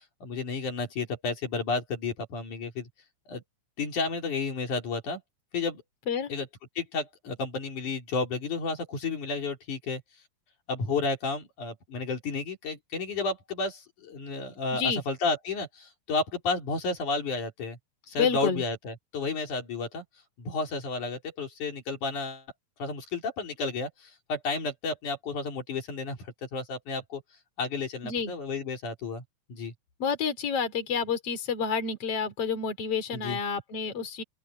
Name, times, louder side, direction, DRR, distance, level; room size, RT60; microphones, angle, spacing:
voice 1, 0.0-2.9 3.3-3.4 3.8-5.2 5.5-5.8 6.3-6.5 6.8-10.0 10.7-17.8 18.1-20.0 20.4-22.4 22.8-26.2 26.5-27.2 27.6-29.2 29.5-29.7 33.1-33.4, left 3 dB, 80° left, 5.3 m, -32 dB
voice 2, 14.7-15.0 18.2-18.6 28.0-28.3 30.0-34.2, left 6 dB, 50° left, 4.3 m, -29 dB
open air
omnidirectional pair, 3.4 m